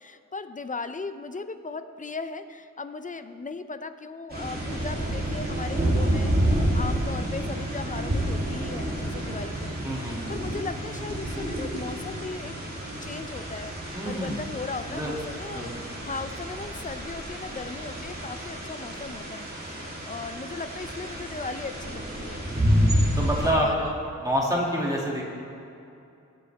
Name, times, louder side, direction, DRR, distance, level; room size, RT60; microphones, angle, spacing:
voice 1, 0.0-12.5 13.0-19.5 20.0-22.4 23.4-24.0, left 4 dB, 25° left, 10 dB, 0.5 m, -37 dB
sound 1, 4.3-23.5, equal, 30° right, 3.0 m, -29 dB
voice 2, 9.8-10.3 13.9-14.4 14.9-15.1 15.5-15.8 22.5-23.9 24.2-25.2, equal, 10° right, -4 dB, 2.4 m, -28 dB
23.5 x 9.2 x 3.5 m, 2.7 s
wide cardioid pair, 160°, 31 cm